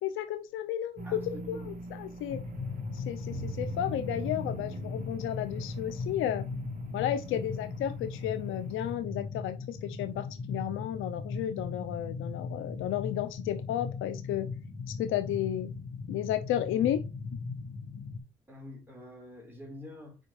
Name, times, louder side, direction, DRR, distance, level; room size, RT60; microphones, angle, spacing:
voice 1, 0.0-2.4 2.9-6.4 6.9-14.5 14.9-15.7 16.1-17.0, left 11 dB, 90° left, 0.6 m, -33 dB
voice 2, 1.0-1.7 7.2-7.4 18.5-20.2, left 1 dB, 10° right, 3.9 m, -47 dB
sound 1, 1.0-9.0, right 4 dB, 45° right, 1.1 m, -43 dB
sound 2, 2.3-18.2, left 4 dB, 65° left, 2.9 m, -38 dB
7.4 x 5.2 x 3.2 m
cardioid pair, 90°, 20 cm